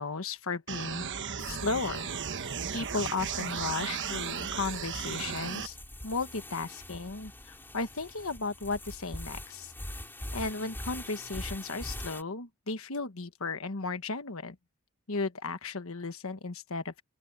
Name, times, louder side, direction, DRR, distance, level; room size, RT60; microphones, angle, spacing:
voice 1, 0.0-2.1 2.7-5.8 6.0-9.7 10.3-14.6 15.1-17.0, left 3 dB, 65° left, 1.4 m, -35 dB
sound 1, 0.7-5.7, right 7 dB, 55° right, 1.2 m, -35 dB
sound 2, 1.4-12.2, left 1 dB, 10° left, 3.3 m, -44 dB
open air
head